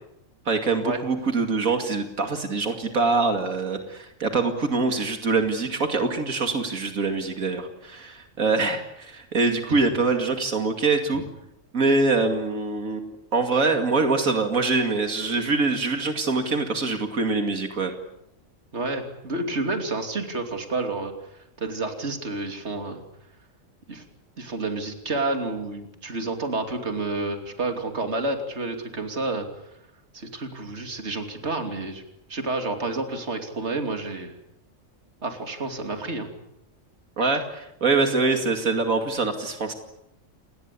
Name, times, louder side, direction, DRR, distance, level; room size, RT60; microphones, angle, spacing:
voice 1, 0.5-11.2 11.7-17.9 37.2-39.7, right 3 dB, 90° right, 5 dB, 2.8 m, -24 dB
voice 2, 18.7-21.1 21.6-23.0 23.9-24.0 24.4-29.5 30.1-32.0 32.3-34.3 35.2-36.3, right 2 dB, 55° right, 5 dB, 3.2 m, -29 dB
28.5 x 20.0 x 8.5 m, 0.81 s
omnidirectional pair, 1.4 m